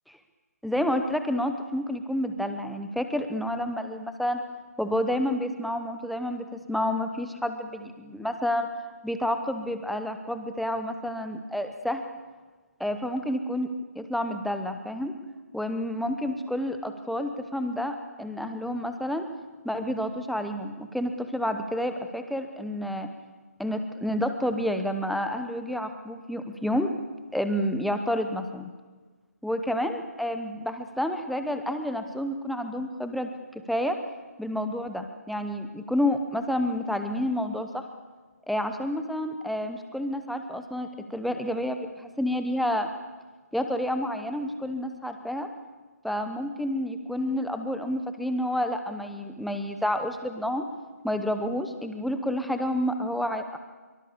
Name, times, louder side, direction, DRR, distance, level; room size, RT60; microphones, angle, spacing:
voice 1, 0.6-4.4 4.8-8.7 9.0-12.0 12.8-13.7 13.9-15.1 15.5-19.3 19.6-23.1 23.6-26.9 27.3-28.7 29.4-33.3 33.7-34.0 34.4-37.8 38.5-42.9 43.5-45.5 46.0-50.7 51.0-53.6, left 1 dB, ahead, 7 dB, 0.8 m, -29 dB
24.0 x 23.0 x 7.1 m, 1.3 s
figure-of-eight pair, 160°, 9 cm